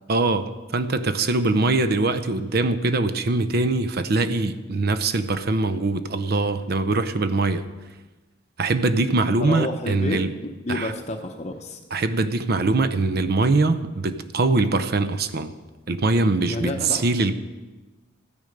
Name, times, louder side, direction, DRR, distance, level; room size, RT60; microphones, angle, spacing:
voice 1, 0.1-7.6 8.6-10.3 10.7-10.9 11.9-15.5 15.9-17.3, right 3 dB, 50° right, 12 dB, 0.6 m, -22 dB
voice 2, 9.4-11.8 16.5-17.0, left 1 dB, 35° left, 5 dB, 0.7 m, -30 dB
14.0 x 9.6 x 5.2 m, 1.2 s
head